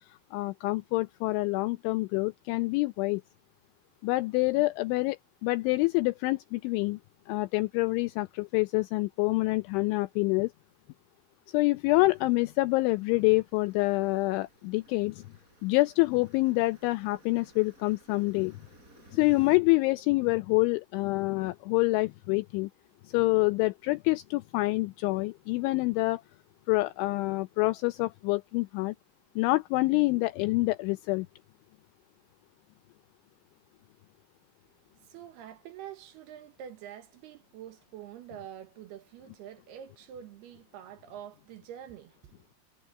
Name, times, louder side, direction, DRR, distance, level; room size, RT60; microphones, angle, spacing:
voice 1, 0.3-3.2 4.0-7.0 7.3-10.5 11.5-15.2 15.6-18.6 19.1-22.7 23.0-26.2 26.7-28.9 29.4-31.3, left 23 dB, 85° left, 2.7 m, -27 dB
sound 1, 12.1-19.6, right 2 dB, 15° right, 5.2 m, -60 dB
voice 2, 35.0-42.5, right 10 dB, 70° right, 2.6 m, -46 dB
omnidirectional pair, 5.8 m